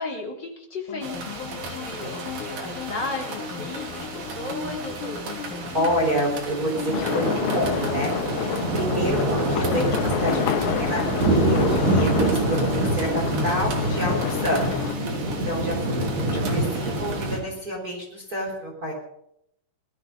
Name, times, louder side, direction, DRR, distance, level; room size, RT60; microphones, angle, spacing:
voice 1, 0.0-5.8 15.9-16.1, left 2 dB, 25° left, 0 dB, 2.7 m, -35 dB
sound 1, 0.9-16.9, left 7 dB, 60° left, 2.3 m, -36 dB
sound 2, 1.0-17.4, right 2 dB, 50° right, 4.4 m, -27 dB
voice 2, 5.7-18.9, equal, 20° right, -1 dB, 3.7 m, -28 dB
sound 3, 6.9-14.9, left 10 dB, 90° left, 2.1 m, -29 dB
20.0 x 14.0 x 5.3 m, 0.74 s
omnidirectional pair, 5.4 m